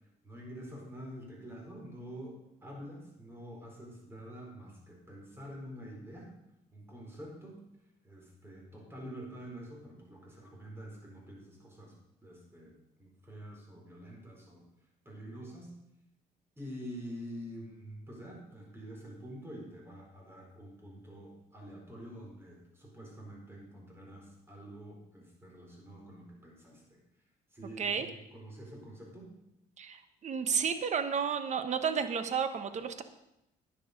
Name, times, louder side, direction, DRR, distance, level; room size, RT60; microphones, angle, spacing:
voice 1, 0.2-6.3 6.7-7.6 8.0-11.9 12.2-12.7 13.0-14.6 15.0-15.7 16.6-27.0 27.5-29.3, equal, 15° right, -1 dB, 4.6 m, -47 dB
voice 2, 29.8-33.0, right 6 dB, 45° right, 10 dB, 1.1 m, -32 dB
10.5 x 10.0 x 5.3 m, 0.84 s
cardioid pair, 110°, 17 cm